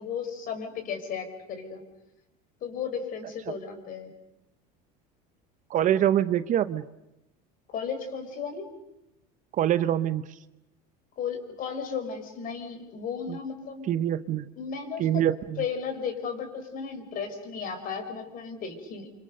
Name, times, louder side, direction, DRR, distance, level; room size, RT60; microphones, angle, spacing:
voice 1, 0.0-1.8 2.6-4.1 7.7-8.6 11.2-13.9 14.6-15.0 15.6-19.1, left 6 dB, 45° left, 7 dB, 5.2 m, -34 dB
voice 2, 5.7-6.8 9.5-10.2 13.3-13.4 13.9-14.4 15.0-15.6, right 11 dB, 40° right, 14 dB, 0.9 m, -24 dB
28.5 x 26.0 x 6.7 m, 0.89 s
supercardioid pair, 120°, 20 cm